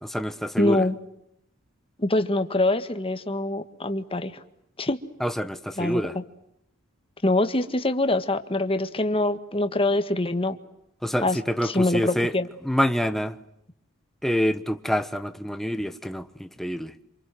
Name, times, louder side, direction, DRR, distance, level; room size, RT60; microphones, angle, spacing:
voice 1, 0.0-0.8 5.2-6.2 11.0-12.3 12.6-13.4 14.2-16.9, equal, ahead, 1.2 m, -26 dB
voice 2, 0.6-1.0 2.0-4.4 4.8-5.0 5.8-6.2 7.2-10.6 11.2-12.5, left 2 dB, 25° left, 1.7 m, -24 dB
27.5 x 27.5 x 7.8 m
head